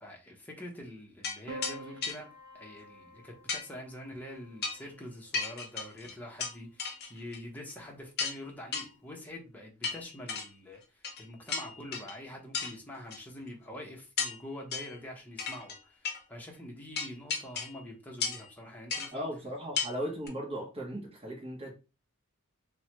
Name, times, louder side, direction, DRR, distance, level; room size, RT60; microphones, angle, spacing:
voice 1, 0.0-19.3, left 1 dB, 10° left, 0.7 m, -45 dB
sound 1, 1.2-1.4 1.6-1.8 2.0-2.2 3.5-3.6 4.6-4.9 5.3-6.5 6.8-7.4 7.7-7.8 8.2-8.4 8.7-8.9 9.8-10.5 11.0-11.2 11.5-12.2 12.5-12.7 13.1-13.2 14.2-14.4 14.7-15.0 15.4-15.8 16.0-16.2 17.0-17.8 18.2-18.5 18.9-19.1 19.8-19.9 20.3-20.4, left 5 dB, 50° left, 0.6 m, -34 dB
Piano, 1.5-5.9 7.1-7.8, right 1 dB, 80° right, 0.6 m, -49 dB
voice 2, 19.1-21.7, equal, 30° right, 0.9 m, -37 dB
3.0 x 2.1 x 2.9 m
head